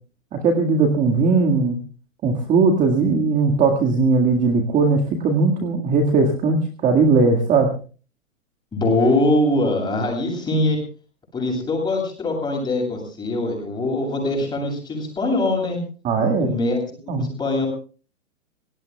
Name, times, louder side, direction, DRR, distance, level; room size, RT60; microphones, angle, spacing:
voice 1, 0.3-1.8 2.2-7.7 16.0-16.5 17.1-17.3, right 4 dB, 20° right, 3 dB, 1.9 m, -18 dB
voice 2, 8.7-10.8 11.3-15.8 16.4-16.8 17.2-17.7, left 2 dB, 10° left, 1 dB, 7.9 m, -22 dB
27.5 x 18.0 x 2.3 m, 0.38 s
hypercardioid pair, 140°, 40 cm